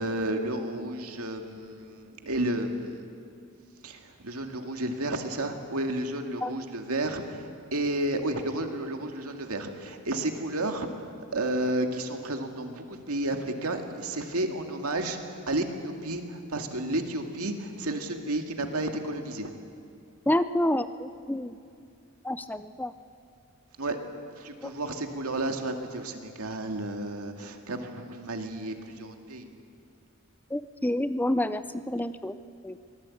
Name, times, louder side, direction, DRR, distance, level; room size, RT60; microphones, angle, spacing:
voice 1, 0.0-3.1 3.8-19.5 23.8-24.0 24.4-29.5, right 1 dB, 90° right, 4 dB, 2.2 m, -32 dB
voice 2, 20.3-21.6 22.2-22.9 24.6-24.7 30.5-32.3 32.6-32.8, left 1 dB, 10° left, 12 dB, 0.5 m, -28 dB
24.5 x 18.0 x 8.6 m, 2.4 s
head